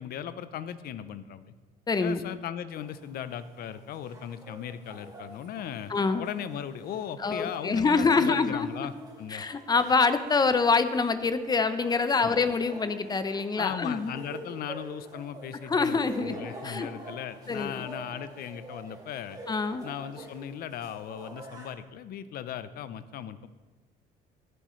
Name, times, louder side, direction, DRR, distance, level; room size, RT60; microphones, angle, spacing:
voice 1, 0.0-1.5 2.0-5.9 6.2-9.4 12.2-12.4 13.6-19.4 19.8-23.5, left 9 dB, 65° left, 13 dB, 0.7 m, -38 dB
voice 2, 1.9-2.2 5.9-6.2 7.2-8.9 9.3-14.1 15.7-16.4 16.6-16.9 17.5-17.8 19.5-19.8, left 4 dB, 25° left, 11 dB, 0.7 m, -25 dB
sound 1, 2.7-21.7, right 2 dB, 20° right, 2.3 m, -47 dB
18.5 x 7.9 x 3.2 m, 1.3 s
cardioid pair, 110°, 17 cm